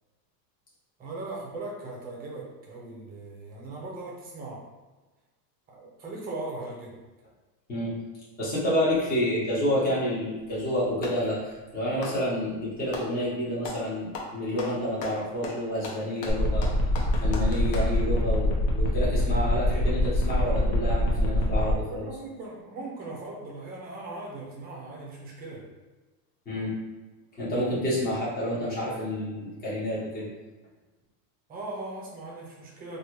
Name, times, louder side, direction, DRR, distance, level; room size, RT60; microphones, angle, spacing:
voice 1, 1.0-4.7 5.7-7.0 21.7-25.7 31.5-33.0, right 2 dB, 20° right, -2 dB, 0.5 m, -39 dB
voice 2, 8.4-16.7 17.2-22.0 26.5-26.7 27.4-30.3, equal, 20° left, -8 dB, 1.0 m, -29 dB
Clapping, 10.3-11.3 11.9-13.1 13.6-13.9 14.1-17.9, left 2 dB, 75° left, 0.9 m, -39 dB
sound 1, 16.3-21.7, equal, 50° left, 0.9 m, -25 dB
3.1 x 2.4 x 3.0 m, 1.2 s
supercardioid pair, 145°, 50 cm